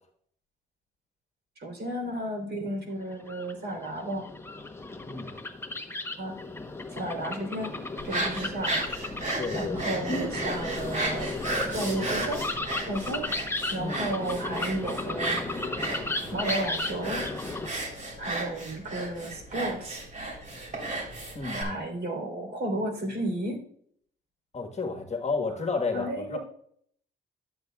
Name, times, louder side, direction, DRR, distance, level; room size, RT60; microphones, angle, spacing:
voice 1, 1.6-4.2 6.2-6.4 6.9-7.7 8.0-8.8 9.5-11.3 11.7-12.5 12.9-13.3 13.7-15.4 16.3-17.2 18.2-20.0 21.5-23.6 25.9-26.4, right 1 dB, 55° right, 3 dB, 3.5 m, -33 dB
sound 1, 3.1-17.7, left 2 dB, 10° left, 0.9 m, -35 dB
voice 2, 5.0-5.3 9.4-9.8 13.8-14.1 21.3-21.8 24.5-26.4, left 4 dB, 35° left, 3 dB, 1.4 m, -31 dB
sound 2, 8.0-21.6, right 2 dB, 40° right, 3.4 m, -34 dB
12.5 x 8.1 x 2.3 m, 0.63 s
cardioid pair, 90°, 20 cm